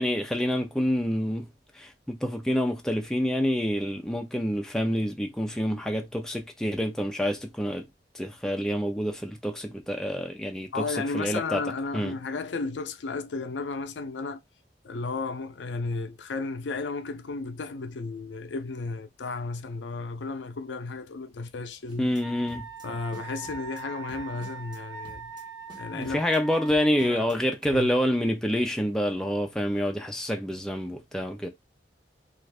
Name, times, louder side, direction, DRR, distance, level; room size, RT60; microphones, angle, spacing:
voice 1, 0.0-1.5 1.8-7.9 8.1-10.8 11.1-11.6 11.9-12.1 22.0-22.6 25.9-31.5, equal, 5° left, 0.5 m, -27 dB
voice 2, 10.7-14.4 14.8-22.1 22.8-25.3 25.7-26.2 27.0-27.4 27.7-28.0, left 3 dB, 85° left, 0.5 m, -33 dB
sound 1, 21.9-22.2 22.5-22.9 23.1-23.8 24.1-24.8 25.0-25.4 25.7-26.4 26.7-27.4 27.6-27.8, equal, 25° right, 1.2 m, -50 dB
Wind instrument woodwind instrument, 22.2-27.1, right 3 dB, 90° right, 0.9 m, -41 dB
2.5 x 2.5 x 3.3 m
head